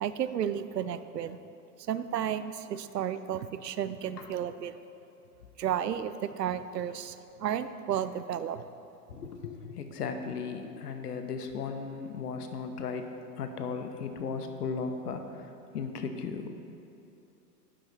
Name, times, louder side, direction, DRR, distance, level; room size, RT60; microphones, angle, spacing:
voice 1, 0.0-1.4 1.9-4.7 5.6-8.6, right 9 dB, 80° right, 13 dB, 0.6 m, -32 dB
voice 2, 9.1-13.1 13.4-16.5, left 5 dB, 75° left, 6 dB, 1.1 m, -36 dB
11.5 x 8.8 x 3.1 m, 3.0 s
hypercardioid pair, 110°, 48 cm